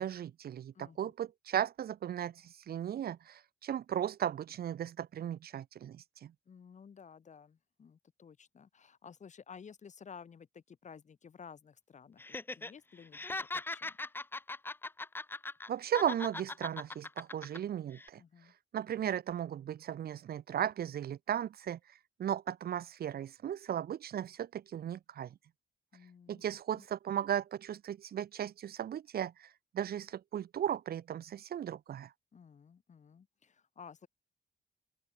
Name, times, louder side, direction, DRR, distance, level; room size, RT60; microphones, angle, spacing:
voice 1, 0.0-6.3 15.7-18.2 18.7-21.8 22.2-25.3 26.3-32.1, right 10 dB, 60° right, 0.9 m, -36 dB
voice 2, 0.7-1.1 6.5-13.2 13.5-13.9 18.2-18.5 25.9-26.9 32.3-34.1, left 6 dB, 45° left, 3.0 m, -54 dB
Laughter, 12.2-12.7 13.0-15.7 15.9-17.6 17.9-18.1, left 2 dB, 10° left, 0.6 m, -40 dB
open air
wide cardioid pair, 140°, 18 cm